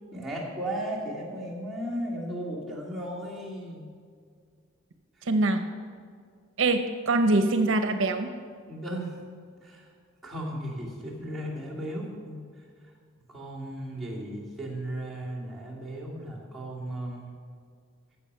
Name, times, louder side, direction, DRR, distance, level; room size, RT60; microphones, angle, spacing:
voice 1, 0.1-3.9 8.7-9.1 9.6-9.9 10.2-12.4 13.3-17.3, right 1 dB, ahead, -8 dB, 2.8 m, -35 dB
voice 2, 5.3-5.6 6.6-8.3, right 2 dB, 75° right, 8 dB, 0.7 m, -23 dB
16.0 x 7.0 x 5.6 m, 2.1 s
head